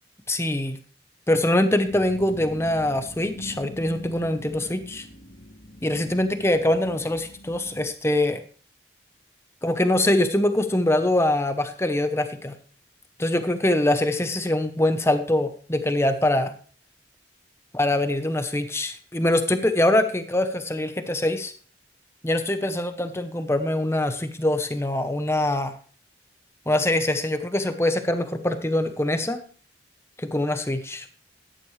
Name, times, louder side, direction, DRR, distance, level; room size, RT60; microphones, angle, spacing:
voice 1, 0.3-0.8 1.3-5.1 5.8-8.4 9.6-12.5 13.2-16.6 17.7-21.5 22.2-25.7 26.7-29.4 30.2-31.1, left 1 dB, 15° left, 9 dB, 0.9 m, -23 dB
sound 1, 1.8-7.9, left 1 dB, 85° left, 2.3 m, -43 dB
13.5 x 10.5 x 3.2 m, 0.42 s
head